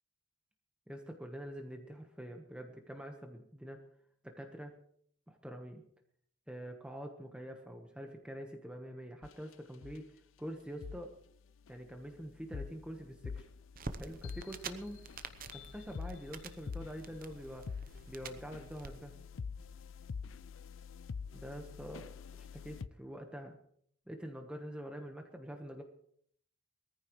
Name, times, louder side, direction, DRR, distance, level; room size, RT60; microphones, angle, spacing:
voice 1, 0.9-3.8 4.2-4.7 5.3-5.8 6.5-10.1 10.4-11.1 11.7-13.5 14.0-15.0 15.5-17.8 18.1-19.1 21.3-23.5 24.1-25.8, equal, 5° right, 3 dB, 1.2 m, -45 dB
sound 1, 9.2-9.5 9.8-10.0 10.8-11.0 11.7-22.9, left 5 dB, 75° left, 0.4 m, -46 dB
sound 2, 13.7-18.9, right 4 dB, 45° right, 0.8 m, -48 dB
21.0 x 14.5 x 3.2 m, 0.63 s
head